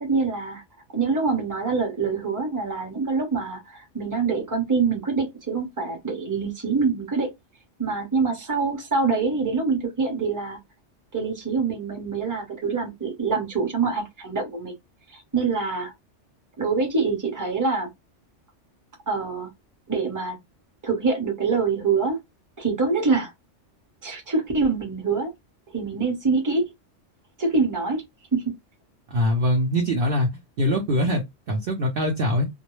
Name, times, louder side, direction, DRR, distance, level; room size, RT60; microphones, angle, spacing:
voice 1, 0.0-0.6 0.9-7.3 7.8-10.6 11.1-14.7 15.1-15.9 16.6-17.9 19.1-19.5 19.9-20.4 20.8-22.2 22.6-23.3 24.0-25.3 25.7-26.6 27.4-28.0 28.3-28.5, right 4 dB, 20° right, 0.8 m, -25 dB
voice 2, 29.1-30.3 30.6-32.4, equal, 55° right, 0.7 m, -23 dB
2.3 x 2.0 x 3.0 m
omnidirectional pair, 1.3 m